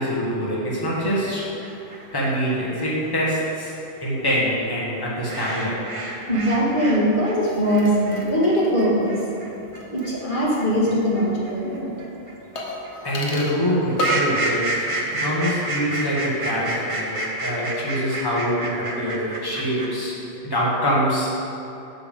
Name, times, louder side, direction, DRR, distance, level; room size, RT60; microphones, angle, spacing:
voice 1, 0.0-1.5 2.1-3.7 4.0-5.8 13.0-20.2 20.4-21.3, equal, 20° left, -6 dB, 1.6 m, -24 dB
sound 1, 1.0-7.0 7.2-20.1, right 2 dB, 30° right, 0.8 m, -30 dB
voice 2, 6.3-9.2 9.9-12.1, equal, 45° left, -6 dB, 2.0 m, -21 dB
sound 2, 7.4-10.8 11.0-11.1 12.6-13.6 14.0-14.4 14.7-15.2 15.5-15.6, equal, 80° left, 1.4 m, -32 dB
9.3 x 7.0 x 3.7 m, 2.9 s
omnidirectional pair, 1.2 m